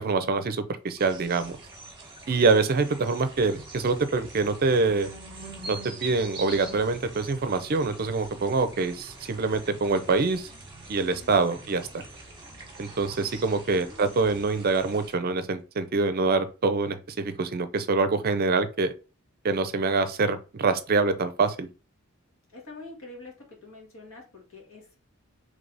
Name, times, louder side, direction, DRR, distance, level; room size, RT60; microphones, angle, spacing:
voice 1, 0.0-1.6 2.3-5.1 5.7-10.5 10.9-12.0 12.8-18.9 19.4-21.7, right 3 dB, 45° right, 0.5 m, -25 dB
sound 1, 1.0-15.1, right 3 dB, 20° right, 1.1 m, -44 dB
voice 2, 2.3-3.0 11.1-11.4 13.5-14.2 22.5-25.0, left 2 dB, 75° left, 1.6 m, -47 dB
sound 2, 3.4-14.6, right 1 dB, 25° left, 1.1 m, -50 dB
3.4 x 3.2 x 3.9 m
head